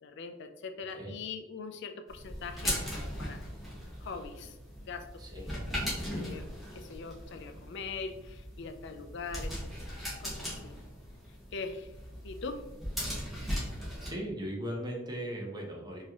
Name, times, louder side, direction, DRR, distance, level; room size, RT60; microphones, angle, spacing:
voice 1, 0.0-3.4 4.0-5.5 6.2-9.9 10.2-10.7 11.3-11.9 12.2-12.6, left 4 dB, 65° left, 7 dB, 0.5 m, -42 dB
sound 1, 2.1-14.1, equal, ahead, 1.4 m, -39 dB
voice 2, 5.2-5.6 14.0-16.0, right 1 dB, 20° right, -1 dB, 0.9 m, -38 dB
4.5 x 2.9 x 2.9 m, 1.0 s
head